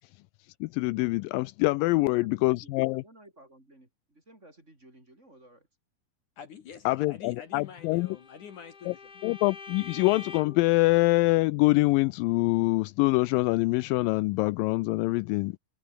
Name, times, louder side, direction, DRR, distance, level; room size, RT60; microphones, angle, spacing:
voice 1, 0.6-3.0 6.9-8.1 8.9-9.0 9.2-15.5, left 22 dB, 90° left, 2.0 m, -25 dB
voice 2, 1.9-5.7, right 1 dB, 15° right, 5.5 m, -55 dB
voice 3, 6.4-9.1, left 7 dB, 55° left, 3.2 m, -46 dB
Bowed string instrument, 7.7-10.7, left 5 dB, 30° left, 2.3 m, -45 dB
omnidirectional pair, 4.5 m